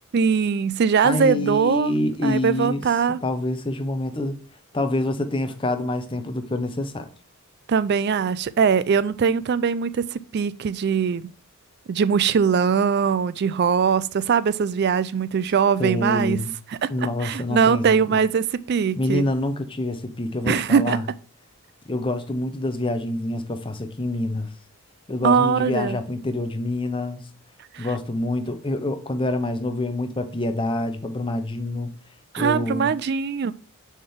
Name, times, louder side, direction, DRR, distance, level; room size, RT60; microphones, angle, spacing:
voice 1, 0.1-1.9 2.2-3.2 7.7-11.3 11.9-16.4 16.8-19.2 20.4-21.0 25.2-26.0 27.7-27.9 32.3-33.5, right 6 dB, 50° right, 0.3 m, -21 dB
voice 2, 1.0-2.9 3.2-4.4 4.7-7.1 15.8-16.5 16.9-18.2 19.0-21.0 21.9-24.5 25.1-27.2 27.8-31.9 32.4-32.9, left 2 dB, 25° left, 0.7 m, -26 dB
6.6 x 4.4 x 3.6 m
head